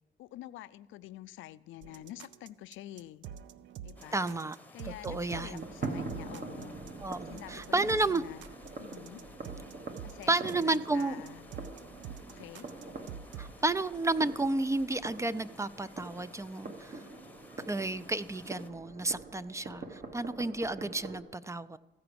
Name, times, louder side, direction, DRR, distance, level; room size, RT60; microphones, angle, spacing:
voice 1, 0.2-3.2 3.8-4.3 4.7-6.8 7.3-8.4 8.8-9.2 10.0-11.5 12.3-12.7, left 14 dB, 80° left, 15 dB, 0.4 m, -47 dB
sound 1, 1.8-13.6, right 9 dB, 70° right, 0.5 m, -47 dB
sound 2, 4.0-18.7, left 2 dB, 10° left, 0.8 m, -56 dB
voice 2, 4.1-4.6 4.8-5.7 7.0-8.2 10.3-11.2 13.4-17.0 17.7-21.8, right 2 dB, 15° right, 16 dB, 0.3 m, -32 dB
sound 3, 5.4-21.2, right 3 dB, 45° right, 1.2 m, -44 dB
14.5 x 5.0 x 6.9 m, 1.0 s
cardioid pair, 90°, 20 cm